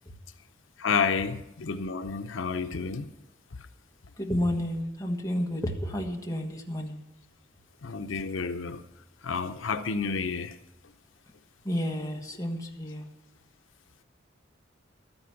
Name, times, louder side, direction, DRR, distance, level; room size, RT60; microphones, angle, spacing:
voice 1, 0.8-3.1 7.8-8.8 9.2-10.6, left 5 dB, 90° left, 0.7 m, -30 dB
voice 2, 4.2-7.0 11.6-13.1, equal, 15° left, 1.4 m, -31 dB
12.5 x 9.9 x 5.8 m
head